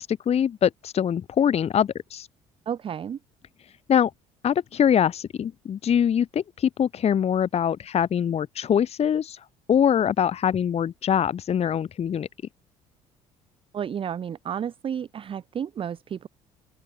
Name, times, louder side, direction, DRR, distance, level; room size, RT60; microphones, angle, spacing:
voice 1, 0.0-2.3 3.9-4.1 4.4-9.4 9.7-12.3, left 8 dB, 40° left, 0.9 m, -23 dB
voice 2, 2.7-3.2 13.7-16.3, right 8 dB, 35° right, 0.5 m, -31 dB
open air
supercardioid pair, 70°, 15 cm